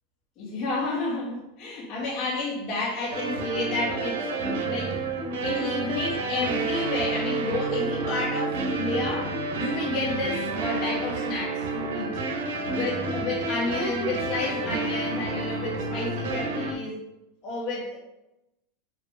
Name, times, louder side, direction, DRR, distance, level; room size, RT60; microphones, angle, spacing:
voice 1, 0.4-5.0 5.4-12.1 12.7-17.0 17.4-18.0, left 2 dB, 40° left, -5 dB, 2.3 m, -31 dB
sound 1, 3.1-16.7, right 3 dB, 80° right, 1.3 m, -29 dB
5.4 x 5.1 x 3.7 m, 0.93 s
supercardioid pair, 145°, 0 cm